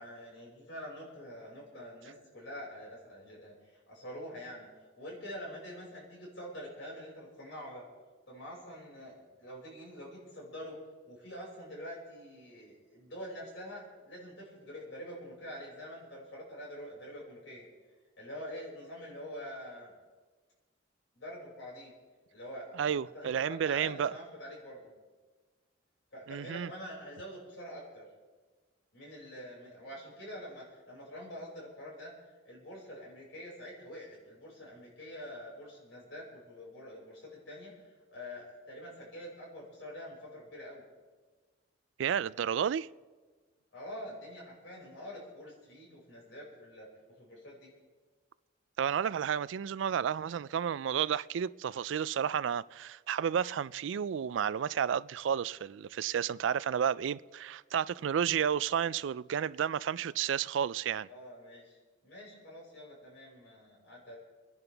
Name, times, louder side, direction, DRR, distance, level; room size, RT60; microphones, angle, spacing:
voice 1, 0.0-4.7 5.0-7.8 8.3-10.8 11.1-17.6 18.2-19.9 21.1-21.9 22.3-24.9 26.1-28.1 28.9-32.1 32.4-40.8 43.7-47.7 61.1-61.8 62.0-64.2, equal, 80° left, 5.8 m, -46 dB
voice 2, 22.8-24.1 26.3-26.7 42.0-42.9 48.8-61.1, right 8 dB, 85° right, 0.3 m, -31 dB
28.0 x 10.5 x 3.4 m
head